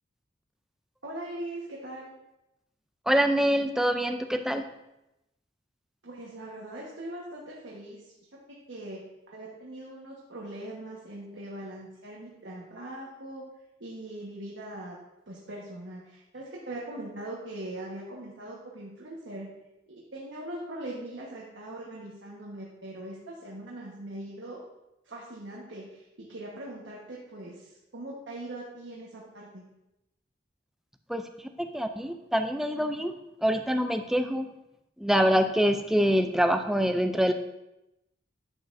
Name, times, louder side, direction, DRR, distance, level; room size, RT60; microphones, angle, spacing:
voice 1, 1.0-2.1 6.0-8.1 8.5-9.0 9.3-13.5 13.8-15.0 15.3-19.5 19.9-24.6 25.0-29.6, right 1 dB, 75° right, -4 dB, 1.3 m, -41 dB
voice 2, 3.1-4.7 31.1-31.3 31.6-33.1 33.4-34.5 35.0-37.3, equal, ahead, 6 dB, 0.3 m, -25 dB
10.5 x 6.5 x 2.6 m, 0.91 s
head